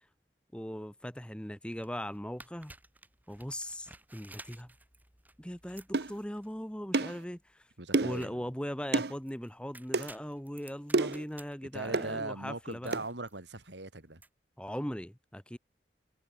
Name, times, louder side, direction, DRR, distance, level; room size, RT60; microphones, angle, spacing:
voice 1, 0.5-2.7 3.3-4.7 5.4-7.6 8.0-13.0 14.6-15.6, equal, 5° left, 1.4 m, -39 dB
sound 1, 1.7-14.3, right 2 dB, 10° right, 5.7 m, -56 dB
sound 2, 5.9-6.1 6.9-7.2 7.9-8.2 8.9-9.1 9.9-10.1 10.9-11.2 11.9-12.1 12.9-13.1, right 3 dB, 65° right, 0.8 m, -29 dB
voice 2, 7.8-8.4 11.7-14.2, right 2 dB, 90° right, 4.3 m, -40 dB
head